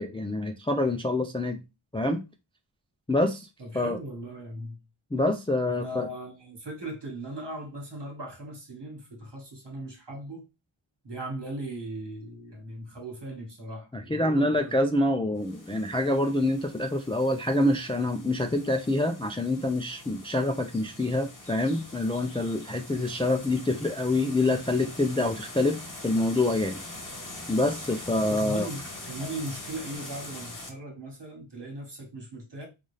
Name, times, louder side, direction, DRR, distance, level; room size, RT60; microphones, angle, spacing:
voice 1, 0.0-1.6 1.9-2.2 3.1-3.5 3.7-4.0 5.1-6.1 13.9-26.8 27.5-28.7, left 2 dB, 10° left, 0.3 m, -26 dB
voice 2, 3.6-4.8 5.7-10.5 11.0-14.7 28.1-32.7, right 1 dB, 55° right, 1.5 m, -38 dB
sound 1, 15.4-30.7, left 2 dB, 40° left, 1.0 m, -43 dB
3.9 x 2.5 x 3.1 m
wide cardioid pair, 50°, 49 cm